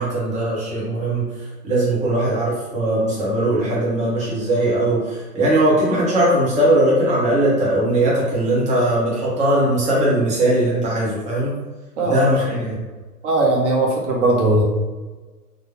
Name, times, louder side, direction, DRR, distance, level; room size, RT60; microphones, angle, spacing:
voice 1, 0.0-11.6 12.0-12.8, right 1 dB, 15° right, -6 dB, 1.0 m, -19 dB
voice 2, 12.0-12.5 13.2-14.6, right 2 dB, 50° right, -2 dB, 1.2 m, -19 dB
4.0 x 2.5 x 3.0 m, 1.3 s
figure-of-eight pair, 105°, 46 cm